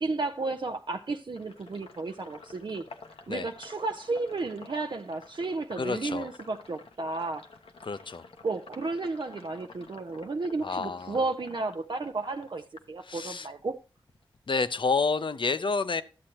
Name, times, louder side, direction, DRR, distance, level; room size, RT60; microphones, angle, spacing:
voice 1, 0.0-2.9 3.3-7.5 8.4-13.8, right 3 dB, 55° right, 0.5 m, -33 dB
Sink (filling or washing), 1.3-13.6 14.0-15.4, left 4 dB, 85° left, 0.9 m, -51 dB
voice 2, 5.8-6.3 7.8-8.2 10.6-11.2 13.0-13.5 14.5-16.0, left 4 dB, 60° left, 0.6 m, -29 dB
11.5 x 7.5 x 2.9 m
cardioid pair, 45°, 9 cm